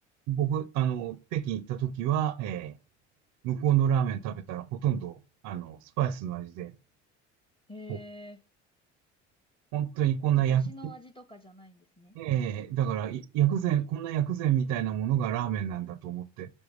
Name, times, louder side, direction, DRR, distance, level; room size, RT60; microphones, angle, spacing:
voice 1, 0.3-2.8 3.4-5.2 5.4-6.7 7.9-8.0 9.7-10.7 12.1-16.5, right 10 dB, 60° right, 0.6 m, -28 dB
voice 2, 7.7-8.4 10.4-12.1, left 1 dB, 15° left, 0.8 m, -47 dB
5.3 x 4.5 x 4.7 m
hypercardioid pair, 70°, 35 cm